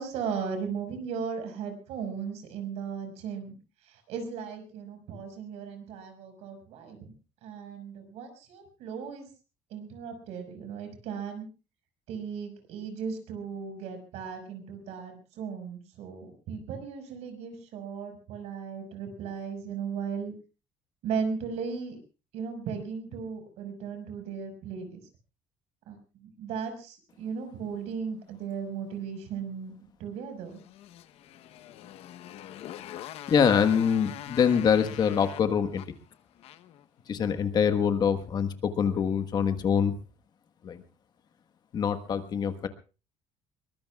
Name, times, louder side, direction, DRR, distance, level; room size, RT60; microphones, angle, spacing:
voice 1, 0.0-3.6 3.8-7.1 7.4-9.3 9.7-11.5 12.1-20.3 21.0-22.0 22.3-25.0 25.9-30.6, right 6 dB, 70° right, 6 dB, 5.3 m, -36 dB
Motorcycle, 30.5-36.8, left 12 dB, 60° left, 0.9 m, -44 dB
voice 2, 33.3-35.9 37.1-39.9 40.6-40.8 41.7-42.7, left 7 dB, 35° left, 9 dB, 1.3 m, -25 dB
22.5 x 21.0 x 2.3 m, 0.33 s
cardioid pair, 170°, 12 cm